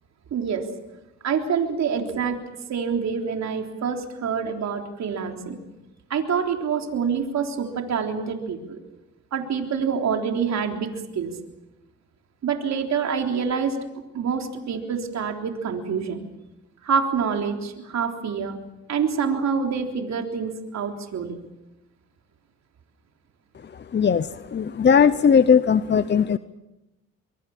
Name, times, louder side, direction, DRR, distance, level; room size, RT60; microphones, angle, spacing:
voice 1, 0.3-0.7 1.2-2.4 2.7-5.6 6.1-8.8 9.3-11.3 12.4-13.8 14.1-16.3 16.8-18.6 18.9-21.4, right 6 dB, 60° right, 3 dB, 3.6 m, -26 dB
voice 2, 23.9-26.4, left 7 dB, 35° left, 14 dB, 0.8 m, -18 dB
24.0 x 23.0 x 7.3 m, 0.98 s
cardioid pair, 90°, 30 cm